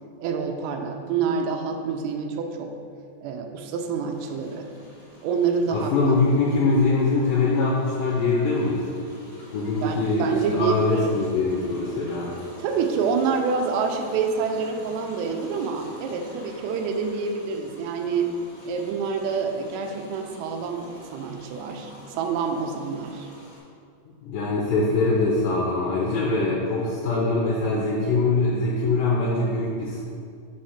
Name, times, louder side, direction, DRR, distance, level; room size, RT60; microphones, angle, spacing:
voice 1, 0.2-2.8 3.2-4.7 5.2-5.9 9.8-11.2 12.6-18.3 18.6-23.3, right 5 dB, 85° right, 3 dB, 1.7 m, -27 dB
sound 1, 4.1-23.6, equal, 50° left, 1.1 m, -46 dB
voice 2, 5.7-8.8 9.5-12.3 24.2-30.0, left 3 dB, 80° left, -5 dB, 2.2 m, -23 dB
5.5 x 3.2 x 5.7 m, 2.3 s
omnidirectional pair, 3.9 m